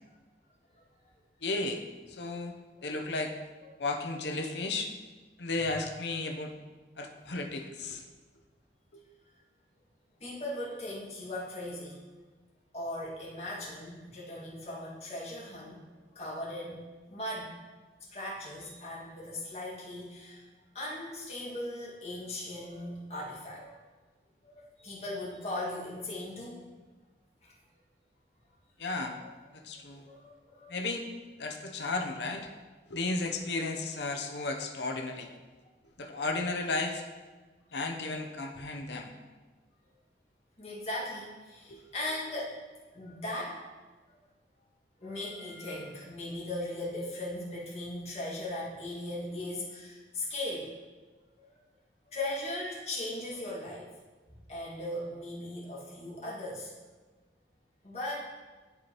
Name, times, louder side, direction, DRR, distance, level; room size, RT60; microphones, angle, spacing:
voice 1, 1.4-1.8 2.1-2.5 2.8-3.3 3.8-4.9 5.4-6.5 7.0-8.0 8.9-9.0 28.8-29.2 29.5-30.1 30.7-31.1 31.4-32.5 32.9-35.3 36.0-37.0 37.7-39.2 41.7-41.8, left 3 dB, 75° left, 3 dB, 0.8 m, -34 dB
voice 2, 10.2-12.0 12.7-15.8 16.1-17.5 18.1-20.5 20.7-23.9 24.4-26.7 28.9-29.3 30.0-30.8 40.6-42.6 42.9-43.7 44.1-44.2 45.0-50.7 51.4-51.5 52.1-53.9 54.5-56.7 57.8-58.1, left 1 dB, 35° left, -6 dB, 2.0 m, -38 dB
11.5 x 4.7 x 3.0 m, 1.3 s
head